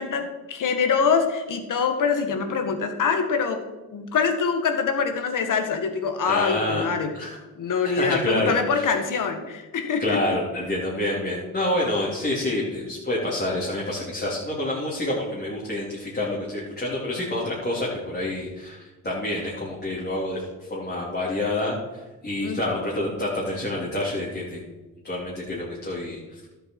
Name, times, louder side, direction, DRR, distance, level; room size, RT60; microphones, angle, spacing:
voice 1, 0.0-3.6 3.9-7.1 7.6-10.2 22.4-22.6, left 5 dB, 65° left, 6 dB, 1.8 m, -24 dB
voice 2, 6.2-6.9 7.1-7.4 7.8-9.0 10.0-24.6 25.0-26.4, left 1 dB, 30° left, -6 dB, 3.3 m, -28 dB
12.5 x 8.0 x 4.7 m, 1.1 s
cardioid pair, 95°, 34 cm